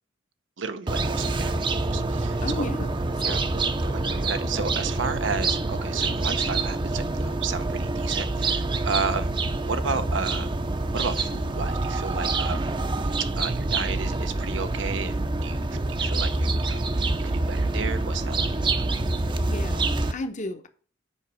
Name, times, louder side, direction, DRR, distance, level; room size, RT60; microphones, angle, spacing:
voice 1, 0.6-2.4 3.2-3.4 3.8-9.3 9.6-10.5 10.9-12.7 13.2-18.5, right 5 dB, 90° right, 0.8 m, -33 dB
sound 1, 0.9-20.1, right 2 dB, 25° right, 0.6 m, -26 dB
voice 2, 2.4-3.5 12.3-12.7 19.2-20.7, left 2 dB, 40° left, 0.9 m, -35 dB
7.2 x 5.3 x 6.1 m
head